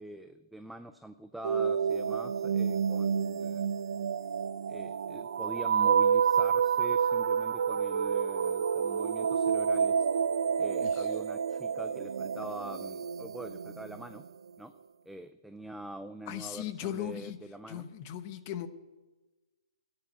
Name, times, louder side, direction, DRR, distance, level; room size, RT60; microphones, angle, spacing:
voice 1, 0.0-3.7 4.7-10.0 10.6-14.2 14.6-14.7 15.1-17.9, right 1 dB, ahead, 8 dB, 0.4 m, -44 dB
sound 1, 1.4-14.2, right 7 dB, 65° right, 0.6 m, -29 dB
voice 2, 10.8-11.1 16.3-17.4 17.7-18.7, left 11 dB, 30° left, 11 dB, 0.9 m, -38 dB
13.0 x 9.8 x 9.7 m, 1.2 s
hypercardioid pair, 160°, 3 cm